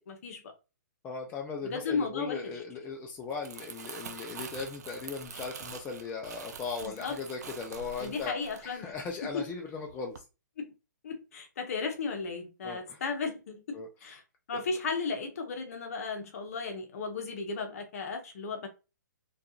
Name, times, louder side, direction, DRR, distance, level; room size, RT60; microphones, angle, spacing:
voice 1, 0.1-0.4 1.6-2.5 6.8-7.2 8.0-8.9 9.3-9.4 10.6-10.7 11.0-14.2 14.5-18.7, left 4 dB, 50° left, 0.7 m, -35 dB
voice 2, 1.0-10.2 12.6-13.0 13.7-13.9, left 5 dB, 15° left, 0.3 m, -38 dB
Crumpling crinkling, 3.1-9.5 9.9-10.2, right 5 dB, 60° right, 0.4 m, -45 dB
2.3 x 2.3 x 2.8 m
figure-of-eight pair, 125°, 10 cm